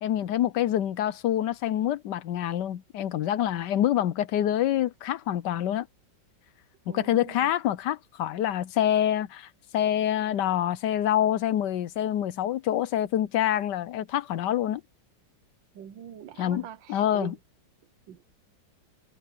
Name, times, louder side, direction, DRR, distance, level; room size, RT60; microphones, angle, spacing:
voice 1, 0.0-5.9 6.9-14.8 16.4-17.4, left 11 dB, 70° left, 1.2 m, -26 dB
voice 2, 6.9-7.5 15.7-17.4 18.1-18.2, right 9 dB, 80° right, 1.7 m, -43 dB
omnidirectional pair, 2.0 m